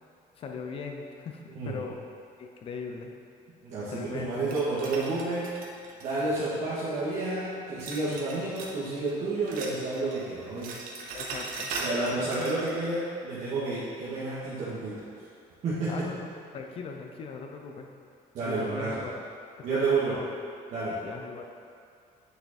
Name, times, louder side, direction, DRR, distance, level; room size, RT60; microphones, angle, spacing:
voice 1, 0.4-2.0 2.4-3.1 3.9-4.6 11.1-12.6 15.9-16.3 16.5-17.9 18.4-19.2 19.6-20.3 21.0-21.5, left 5 dB, 40° left, 3 dB, 0.8 m, -39 dB
voice 2, 1.5-1.8 3.6-5.5 6.0-10.7 11.8-15.3 15.6-16.1 18.3-19.0 19.6-20.1 20.7-21.0, right 3 dB, 50° right, -11 dB, 1.9 m, -30 dB
sound 1, 4.5-6.6 7.8-8.8 9.1-10.2 10.5-12.8, right 3 dB, 70° right, 1.2 m, -39 dB
9.3 x 5.9 x 4.3 m, 2.4 s
cardioid pair, 175°, 15 cm